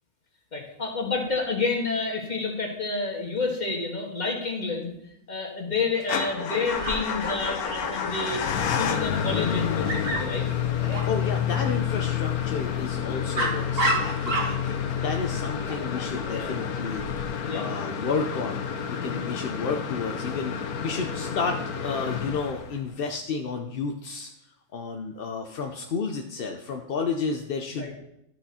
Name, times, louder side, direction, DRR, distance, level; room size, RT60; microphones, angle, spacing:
voice 1, 0.5-4.9 5.3-8.4 8.8-10.5 16.3-16.6 17.4-17.7 27.7-27.9, left 4 dB, 30° left, 0 dB, 1.8 m, -29 dB
Motor vehicle (road) / Engine starting / Idling, 6.0-23.0, left 8 dB, 90° left, 1.3 m, -29 dB
Dog, 6.7-17.2, right 1 dB, 40° right, 1.6 m, -34 dB
voice 2, 11.0-17.3 17.5-18.6 18.9-20.6 20.8-24.3 24.7-27.9, left 4 dB, 50° left, 3 dB, 0.7 m, -31 dB
12.5 x 6.0 x 4.2 m, 0.82 s
omnidirectional pair, 1.5 m